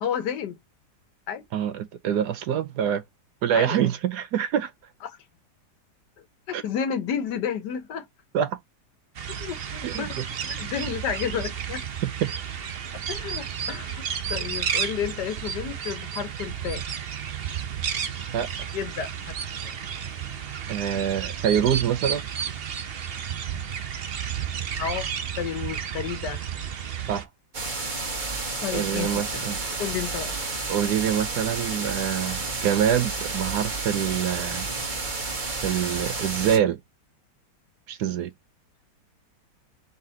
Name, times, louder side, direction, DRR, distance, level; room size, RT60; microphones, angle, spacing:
voice 1, 0.0-0.6 1.3-1.4 3.5-3.9 5.0-5.2 6.5-8.1 9.3-10.2 10.5-11.8 13.1-14.0 14.3-16.9 18.7-19.3 24.8-25.1 25.4-26.4 28.6-29.5 29.8-30.3, left 8 dB, 75° left, 1.6 m, -31 dB
voice 2, 1.5-3.0 3.4-4.7 6.5-6.6 8.3-8.6 9.8-10.3 12.0-12.3 18.3-18.5 20.7-22.3 27.1-27.3 28.7-29.6 30.7-34.7 35.6-36.8 37.9-38.3, right 9 dB, 75° right, 1.2 m, -25 dB
sound 1, 9.1-27.2, right 8 dB, 50° right, 0.7 m, -32 dB
sound 2, 27.5-36.6, right 3 dB, 30° right, 1.3 m, -31 dB
4.2 x 4.1 x 2.8 m
omnidirectional pair, 1.8 m